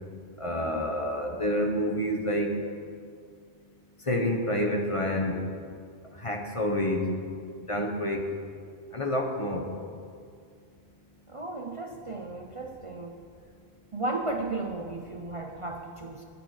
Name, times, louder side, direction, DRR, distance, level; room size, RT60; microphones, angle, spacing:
voice 1, 0.4-2.5 4.1-5.4 6.2-7.1 7.7-8.2 8.9-9.6, left 1 dB, 30° left, 2 dB, 1.2 m, -28 dB
voice 2, 11.3-13.2 13.9-16.2, right 2 dB, 35° right, 2 dB, 0.7 m, -34 dB
20.5 x 6.9 x 5.0 m, 2.2 s
omnidirectional pair, 1.1 m